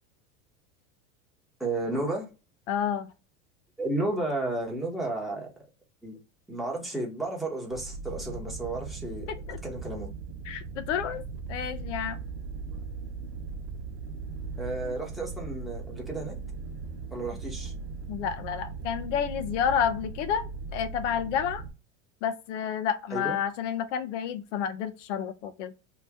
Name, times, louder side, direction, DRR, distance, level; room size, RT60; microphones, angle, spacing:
voice 1, 1.6-2.3 3.8-5.5 6.0-6.2 6.5-9.3 9.6-10.1 12.6-12.8 14.6-16.3 17.1-17.7 23.1-23.4, right 2 dB, ahead, 0.9 m, -32 dB
voice 2, 2.7-3.1 9.5-9.6 10.4-11.2 11.5-12.2 14.8-14.9 18.1-21.6 22.2-25.7, left 8 dB, 80° left, 0.8 m, -30 dB
sound 1, 7.7-21.7, right 4 dB, 65° right, 0.8 m, -38 dB
3.0 x 2.8 x 3.4 m
supercardioid pair, 160°, 36 cm